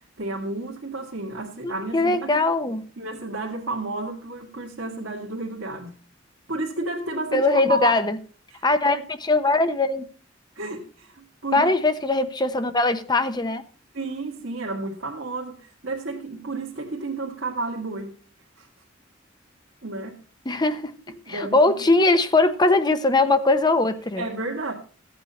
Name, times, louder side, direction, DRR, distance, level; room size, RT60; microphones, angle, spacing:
voice 1, 0.2-2.5 3.0-5.9 6.5-8.0 8.5-8.6 10.5-11.7 13.9-18.2 18.6-18.7 19.8-20.2 21.3-21.6 24.2-24.7, right 2 dB, 85° right, 1.8 m, -31 dB
voice 2, 1.6-2.8 7.3-8.2 8.6-10.0 11.5-13.6 20.5-20.9 21.3-24.3, left 2 dB, 20° left, 0.9 m, -21 dB
14.0 x 8.6 x 4.1 m
head